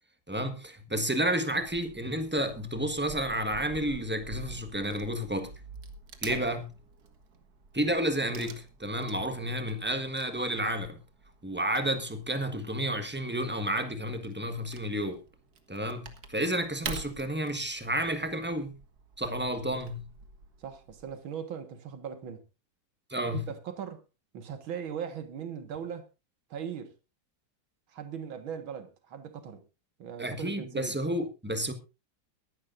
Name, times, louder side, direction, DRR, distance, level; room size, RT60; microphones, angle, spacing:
voice 1, 0.3-5.5 6.2-6.7 7.7-11.0 11.4-15.2 15.7-18.8 19.2-20.1 23.1-23.5 30.2-31.7, right 1 dB, 5° right, 1.1 m, -31 dB
Wood / Tearing, 1.5-21.1, right 4 dB, 50° right, 1.9 m, -47 dB
voice 2, 20.6-22.4 23.3-24.0 24.3-26.1 26.5-26.9 27.9-29.6 30.0-31.0, right 8 dB, 80° right, 2.3 m, -39 dB
22.5 x 11.5 x 2.6 m
omnidirectional pair, 2.2 m